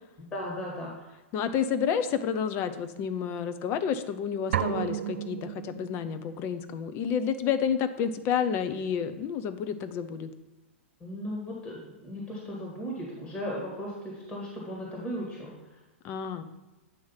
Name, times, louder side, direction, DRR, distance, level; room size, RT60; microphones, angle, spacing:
voice 1, 0.2-1.1 11.0-15.6, equal, 20° left, -3 dB, 1.8 m, -36 dB
voice 2, 1.3-10.3 16.0-16.4, left 7 dB, 35° left, 11 dB, 0.6 m, -30 dB
sound 1, 4.5-6.3, right 11 dB, 70° right, 0.4 m, -32 dB
8.5 x 3.1 x 5.7 m, 1.1 s
hypercardioid pair, 115°, 7 cm